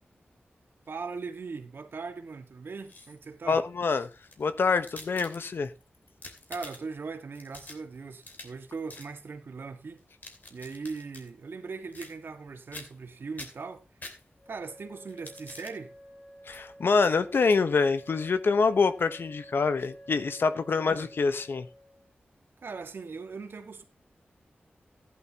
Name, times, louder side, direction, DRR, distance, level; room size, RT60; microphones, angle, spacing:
voice 1, 0.9-3.6 6.5-10.0 10.5-13.8 14.5-15.9 20.8-21.1 22.6-23.8, right 4 dB, 75° right, 1.7 m, -39 dB
sound 1, 2.7-3.4 4.1-5.7 6.1-7.0 7.3-8.6 8.9-9.1 10.0-11.3 11.9-12.4 12.7-13.1 13.4-14.6 15.1-15.8 16.5-16.6 17.0-17.1 17.4-17.6, left 2 dB, 50° left, 2.8 m, -47 dB
voice 2, 3.5-4.1 4.4-5.7 16.5-21.7, left 4 dB, 75° left, 1.0 m, -25 dB
Wind instrument woodwind instrument, 14.4-22.1, right 1 dB, 90° left, 6.4 m, -51 dB
15.5 x 10.5 x 2.9 m
wide cardioid pair, 100°, 4 cm